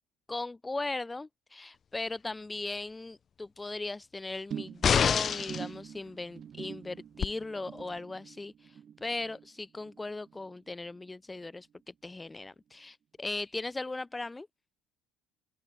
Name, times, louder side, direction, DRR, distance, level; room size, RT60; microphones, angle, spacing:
voice 1, 0.3-11.7 12.0-14.5, left 2 dB, 15° left, 3.8 m, -38 dB
sound 1, 4.5-11.1 11.4-11.8 12.1-12.2, right 8 dB, 45° right, 5.6 m, -46 dB
sound 2, 4.8-5.7 7.2-7.3, left 7 dB, 40° left, 2.4 m, -25 dB
open air
supercardioid pair, 90°, 0 cm